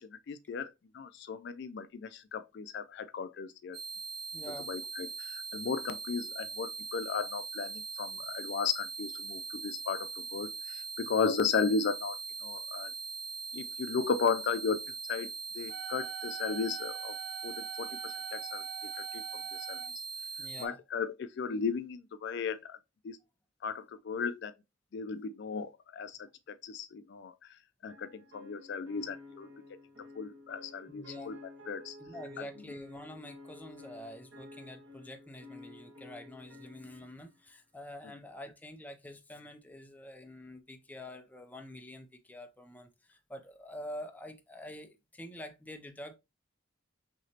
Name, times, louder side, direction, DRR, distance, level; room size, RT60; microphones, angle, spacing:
voice 1, 0.1-3.8 4.4-12.9 13.5-14.8 15.1-17.2 17.4-18.6 19.0-19.2 19.7-19.8 20.6-22.8 23.0-23.2 23.6-24.5 24.9-26.2 26.6-27.5 27.8-29.5 30.1-31.4 31.7-32.0, left 5 dB, 65° left, 0.4 m, -35 dB
sound 1, 3.7-20.7, right 4 dB, 25° right, 1.2 m, -41 dB
voice 2, 4.3-4.7 20.4-20.8 30.8-31.3 32.0-46.2, left 1 dB, 10° left, 0.5 m, -47 dB
Wind instrument woodwind instrument, 15.7-19.9, right 12 dB, 70° right, 0.3 m, -45 dB
sound 2, 27.9-37.4, left 2 dB, 85° right, 1.7 m, -51 dB
6.1 x 2.9 x 2.8 m
head